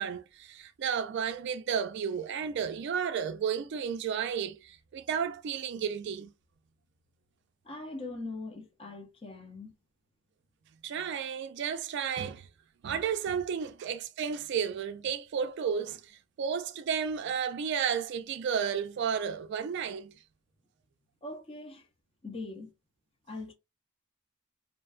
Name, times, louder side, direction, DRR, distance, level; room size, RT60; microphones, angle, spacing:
voice 1, 0.0-6.3 10.8-12.5 12.8-20.1, right 7 dB, 60° right, 0.3 m, -32 dB
voice 2, 7.6-9.7 13.6-13.7 21.2-21.9 22.2-22.7 23.3-23.5, left 2 dB, 25° left, 0.6 m, -41 dB
2.5 x 2.2 x 2.3 m
head